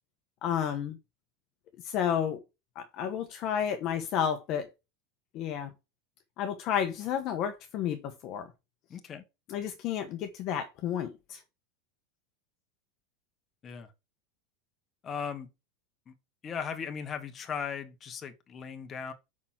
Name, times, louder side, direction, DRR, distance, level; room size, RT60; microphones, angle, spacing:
voice 1, 0.4-1.0 1.8-2.4 2.7-4.7 5.3-5.7 6.4-8.5 9.5-11.4, left 9 dB, 35° left, 1.1 m, -31 dB
voice 2, 8.9-9.2 13.6-13.9 15.0-15.5 16.1-16.2 16.4-19.1, left 6 dB, 20° left, 1.3 m, -37 dB
6.8 x 6.1 x 7.3 m
supercardioid pair, 175°, 0 cm